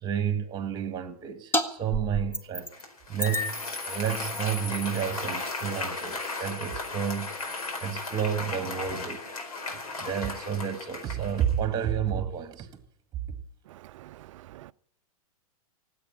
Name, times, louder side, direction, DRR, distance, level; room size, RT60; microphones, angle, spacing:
voice 1, 0.0-2.7 3.1-3.5 3.9-7.3 7.8-9.3 9.7-12.7, right 8 dB, 20° right, 1.9 m, -30 dB
sound 1, 1.5-1.7 1.9-2.8 3.2-8.3, left 1 dB, 10° left, 1.4 m, -35 dB
Applause, 2.7-11.6, left 3 dB, 80° left, 4.7 m, -36 dB
voice 2, 13.7-14.7, right 15 dB, 60° right, 0.5 m, -48 dB
17.0 x 8.5 x 8.8 m
hypercardioid pair, 125°, 19 cm